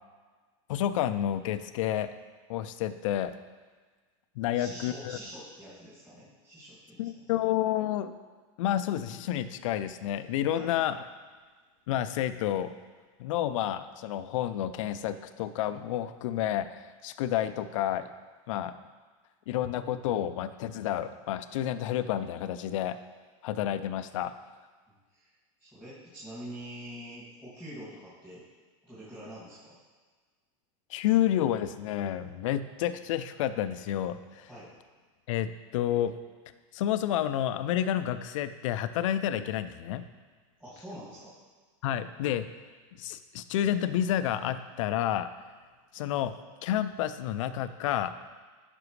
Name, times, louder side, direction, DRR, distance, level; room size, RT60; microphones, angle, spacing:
voice 1, 0.7-2.1 2.5-3.3 4.4-5.2 7.0-8.1 8.6-11.0 11.9-12.7 13.2-18.1 18.5-18.7 19.5-23.0 23.4-24.3 30.9-34.5 35.3-36.1 36.7-40.0 41.8-42.5 42.9-45.3 45.9-46.3 46.6-48.1, left 11 dB, 70° left, 12 dB, 0.5 m, -30 dB
voice 2, 4.4-7.5 10.5-10.7 25.1-25.3 25.6-28.4 28.8-29.8 34.5-34.7 40.6-41.3, equal, 10° right, -13 dB, 2.3 m, -45 dB
9.9 x 6.0 x 3.2 m, 1.4 s
supercardioid pair, 140°, 17 cm